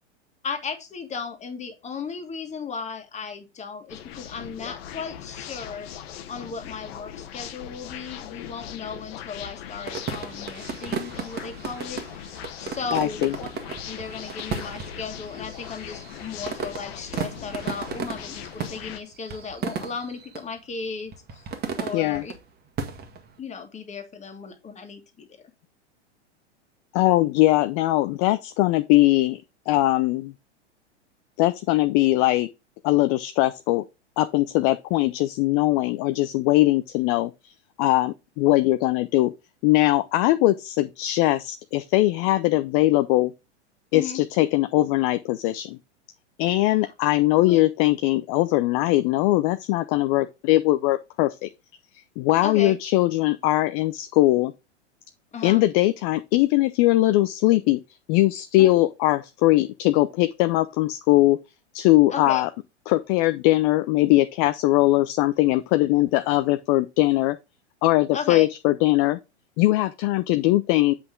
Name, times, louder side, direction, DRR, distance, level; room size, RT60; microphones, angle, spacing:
voice 1, 0.4-5.9 6.3-12.2 12.6-13.5 13.9-21.5 21.8-22.3 23.4-25.3 43.9-44.2 46.8-46.9 47.4-47.6 52.4-52.8 55.3-55.6 58.6-58.7 62.1-62.4 68.1-68.5, left 5 dB, 20° left, 1.9 m, -35 dB
sound 1, 3.9-19.0, left 10 dB, 60° left, 1.4 m, -40 dB
sound 2, 9.9-20.4 21.1-22.4 22.8-23.3, right 6 dB, 25° right, 1.7 m, -35 dB
voice 2, 12.9-13.3 21.9-22.2 26.9-30.3 31.4-32.5 32.8-33.8 34.2-37.5 37.8-39.3 39.6-43.3 43.9-45.8 46.4-51.5 52.2-54.5 55.4-57.8 58.1-61.4 61.7-62.5 62.9-67.4 67.8-69.2 69.6-70.9, left 17 dB, 40° left, 0.6 m, -21 dB
7.9 x 5.7 x 3.8 m
hypercardioid pair, 110°, 35 cm